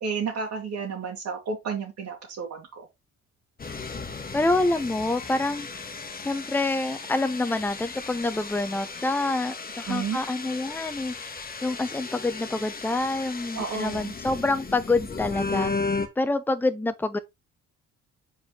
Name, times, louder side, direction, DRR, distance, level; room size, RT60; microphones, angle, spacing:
voice 1, 0.0-2.9 9.9-10.2 13.5-14.1, right 5 dB, 65° right, 2.1 m, -31 dB
sound 1, 3.6-16.1, left 4 dB, 30° left, 1.3 m, -35 dB
voice 2, 4.3-5.7 6.2-11.3 11.6-15.7 16.2-17.2, left 2 dB, 5° left, 0.7 m, -27 dB
6.4 x 4.7 x 3.3 m
cardioid pair, 90°, 30 cm